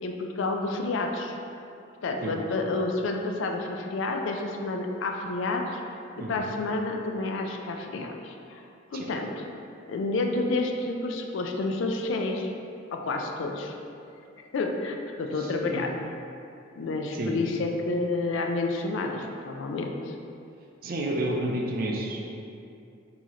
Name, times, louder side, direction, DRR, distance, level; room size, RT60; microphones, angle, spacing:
voice 1, 0.0-1.4 2.0-5.8 6.2-8.7 8.9-9.3 9.9-12.5 12.9-13.7 14.5-15.9 16.8-20.2, left 3 dB, 85° left, 3 dB, 0.4 m, -29 dB
voice 2, 6.1-6.5 8.9-9.1 15.4-15.8 17.1-17.4 20.8-22.2, right 1 dB, 50° right, 0 dB, 0.4 m, -30 dB
4.7 x 2.8 x 2.8 m, 2.6 s
head